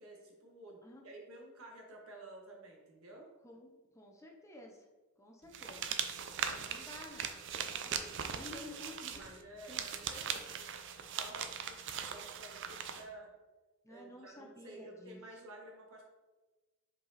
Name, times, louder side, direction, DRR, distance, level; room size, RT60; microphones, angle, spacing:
voice 1, 0.0-3.3 9.1-10.7 11.0-11.8 12.1-13.3 13.9-16.0, right 1 dB, 75° right, 0 dB, 1.4 m, -52 dB
voice 2, 3.4-4.9 5.2-5.8 6.4-8.1 8.4-9.3 9.7-9.8 10.3-10.4 11.3-11.4 13.8-15.2, left 1 dB, 15° left, 1 dB, 0.7 m, -52 dB
sound 1, 5.5-13.0, right 7 dB, 55° right, 0.5 m, -40 dB
5.3 x 4.7 x 4.1 m, 1.2 s
head